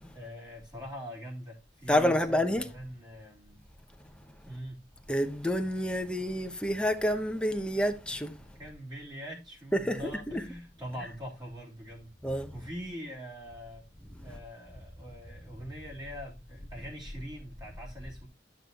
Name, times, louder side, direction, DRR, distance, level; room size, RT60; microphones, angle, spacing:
voice 1, 0.0-3.6 4.4-4.9 8.5-13.9 14.2-18.3, equal, 25° right, 3.3 m, -43 dB
voice 2, 1.9-2.7 5.1-8.4 9.7-10.4 12.2-12.5 14.2-14.3, equal, 5° left, 1.0 m, -28 dB
12.5 x 6.8 x 2.9 m
head